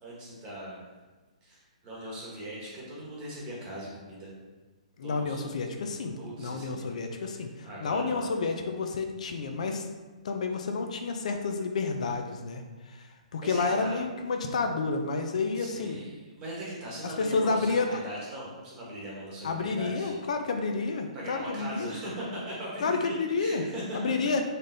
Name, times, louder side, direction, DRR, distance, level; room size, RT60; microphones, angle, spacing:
voice 1, 0.0-0.8 1.4-4.3 5.0-5.4 6.2-6.9 7.2-8.3 13.4-14.0 15.6-20.2 21.1-24.1, right 1 dB, 20° right, -5 dB, 1.1 m, -40 dB
voice 2, 5.0-9.8 10.2-16.0 17.0-18.0 19.4-22.0 22.8-23.6 23.9-24.4, left 4 dB, 65° left, 5 dB, 0.4 m, -30 dB
4.1 x 3.4 x 2.6 m, 1.3 s
hypercardioid pair, 160°, 4 cm